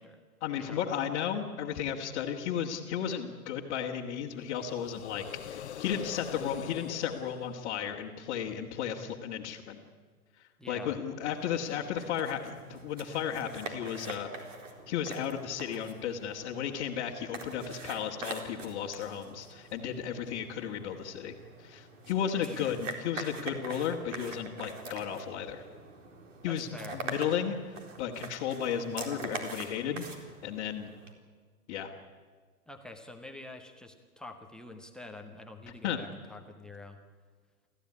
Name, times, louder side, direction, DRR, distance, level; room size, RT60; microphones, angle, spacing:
voice 1, 0.4-9.8 10.7-14.3 14.9-21.3 21.6-25.6 26.4-30.1 30.4-30.9 31.7-31.9 35.8-36.0, left 8 dB, 25° left, -4 dB, 1.8 m, -34 dB
sound 1, 4.3-8.4, left 10 dB, 45° left, 0.9 m, -44 dB
voice 2, 10.6-11.0 22.3-22.8 26.5-27.0 32.7-37.0, left 2 dB, ahead, 2 dB, 0.6 m, -46 dB
sound 2, 11.3-31.1, right 3 dB, 55° right, 4.1 m, -44 dB
28.5 x 14.5 x 9.9 m, 1.6 s
hypercardioid pair, 135°, 46 cm